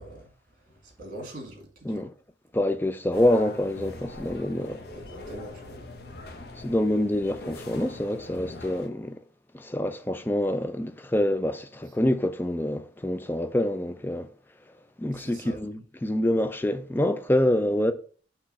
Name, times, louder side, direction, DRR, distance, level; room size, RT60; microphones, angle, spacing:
voice 1, 0.0-2.1 4.9-5.8 11.8-11.9 15.1-15.6, right 1 dB, 50° right, 1.8 m, -43 dB
voice 2, 2.5-4.8 6.6-9.2 9.5-14.3 15.0-17.9, left 1 dB, 10° left, 0.4 m, -26 dB
sound 1, 3.1-8.9, left 2 dB, 60° left, 0.8 m, -42 dB
6.3 x 3.0 x 5.4 m
head